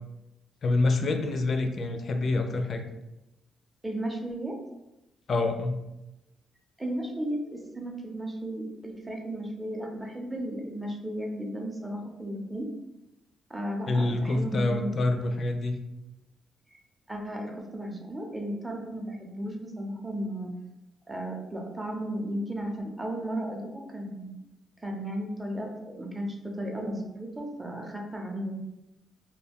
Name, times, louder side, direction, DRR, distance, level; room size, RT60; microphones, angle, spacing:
voice 1, 0.6-2.8 5.3-5.8 13.9-15.8, left 2 dB, 50° left, 6 dB, 0.4 m, -26 dB
voice 2, 3.8-4.6 6.8-12.7 13.5-14.9 17.1-20.5 21.1-24.3 24.8-28.6, right 1 dB, 15° right, 1 dB, 0.6 m, -34 dB
2.3 x 2.2 x 3.4 m, 0.95 s
cardioid pair, 90°, 0 cm